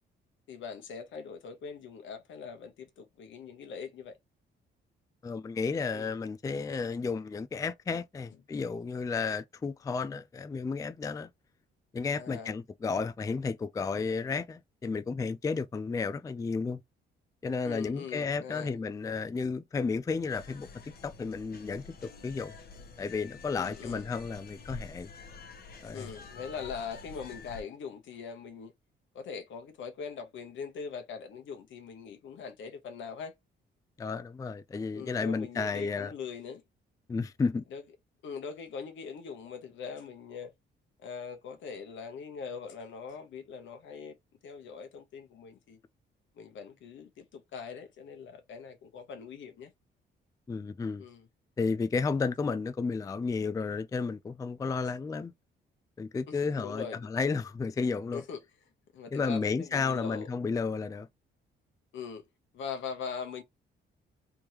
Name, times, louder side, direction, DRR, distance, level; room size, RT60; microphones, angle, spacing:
voice 1, 0.5-4.2 5.9-6.1 12.2-12.6 17.6-18.8 23.5-24.1 25.9-28.7 29.1-33.3 34.9-36.6 37.7-37.8 38.2-40.5 41.0-44.2 44.4-45.8 46.3-49.7 51.0-51.3 56.3-57.1 58.1-58.4 58.9-60.3 61.9-62.3 62.5-63.4, left 6 dB, 75° left, 1.0 m, -42 dB
voice 2, 5.2-11.3 11.9-16.8 17.4-20.7 21.0-22.5 23.0-25.1 25.8-26.1 34.0-36.1 37.1-37.6 50.5-51.0 51.6-55.3 56.0-58.2 59.1-61.1, left 4 dB, 15° left, 0.3 m, -32 dB
sound 1, 20.3-27.6, left 4 dB, 50° left, 1.2 m, -48 dB
3.5 x 3.1 x 2.9 m
cardioid pair, 90°, 20 cm